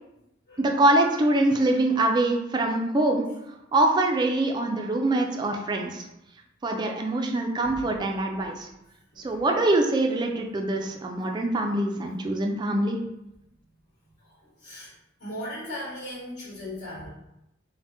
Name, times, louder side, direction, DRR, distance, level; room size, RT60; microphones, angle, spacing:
voice 1, 0.6-3.3 3.7-6.0 6.6-8.7 9.2-13.0, right 2 dB, 20° right, 2 dB, 0.3 m, -24 dB
voice 2, 7.6-8.0 8.3-8.5 9.1-9.4 14.2-14.9 15.2-17.1, left 1 dB, 60° left, -7 dB, 1.4 m, -38 dB
2.8 x 2.1 x 3.3 m, 0.88 s
head